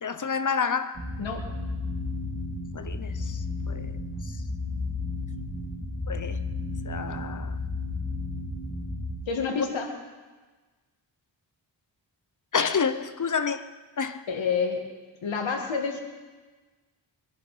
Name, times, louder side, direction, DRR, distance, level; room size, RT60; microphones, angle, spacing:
voice 1, 0.0-1.0 2.7-3.4 3.7-3.9 6.1-6.4 6.8-7.6 12.5-13.7 14.0-14.2, left 6 dB, 40° left, 0.9 m, -29 dB
sound 1, 1.0-9.1, left 3 dB, 35° right, 4.4 m, -33 dB
voice 2, 1.2-1.5 9.3-9.9 14.3-14.8 15.2-16.0, left 5 dB, 85° left, 2.1 m, -28 dB
24.5 x 10.5 x 5.0 m
cardioid pair, 70°, 45 cm